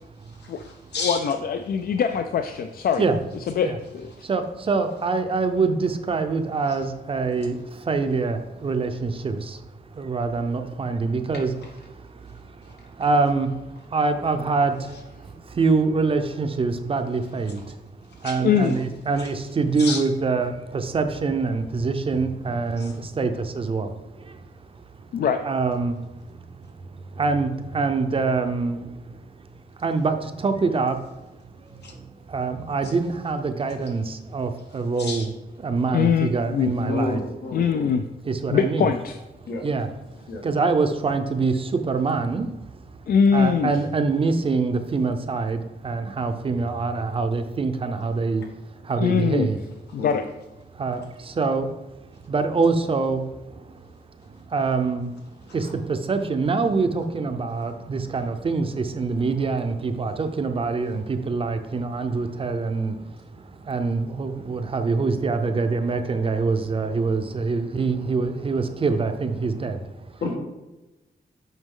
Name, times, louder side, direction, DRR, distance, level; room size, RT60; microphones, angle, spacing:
voice 1, 0.2-1.3 6.7-6.8 11.3-11.7 12.6-12.9 14.9-15.0 18.1-18.4 19.1-19.3 19.8-20.0 22.8-23.0 31.8-31.9 32.8-32.9 35.0-35.3 36.8-37.9 39.5-39.6 40.3-40.4 48.4-48.5 49.9-50.2 55.5-55.7 70.2-70.4, left 3 dB, 90° left, 1 dB, 1.7 m, -32 dB
voice 2, 1.0-3.0 3.5-4.3 18.4-18.7 25.1-25.4 35.9-36.7 37.5-38.0 38.5-39.2 43.1-43.7 49.0-49.5 49.9-50.2, left 7 dB, 60° left, 8 dB, 0.4 m, -22 dB
voice 3, 4.2-9.6 9.9-11.5 11.9-17.8 18.2-24.5 25.4-29.2 29.8-31.0 31.4-35.3 35.6-37.2 38.3-38.9 39.6-39.9 40.4-42.5 42.9-43.0 43.3-48.4 48.8-49.6 50.7-51.7 52.3-55.1 55.5-70.0, right 4 dB, 35° right, 8 dB, 0.5 m, -25 dB
8.1 x 5.1 x 3.8 m, 1.0 s
wide cardioid pair, 175°, 17 cm